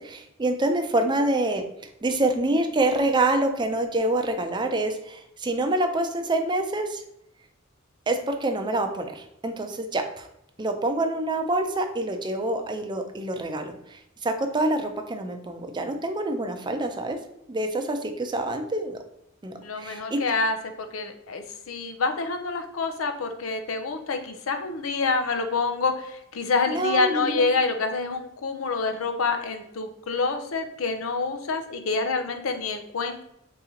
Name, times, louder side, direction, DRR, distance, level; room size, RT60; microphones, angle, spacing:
voice 1, 0.0-1.6 2.0-7.0 8.1-10.3 10.6-17.2 17.5-19.0 19.4-20.2 26.7-27.4, right 2 dB, 20° right, 5 dB, 0.5 m, -26 dB
voice 2, 19.6-33.2, left 4 dB, 90° left, 7 dB, 0.6 m, -27 dB
4.0 x 2.9 x 3.7 m, 0.79 s
head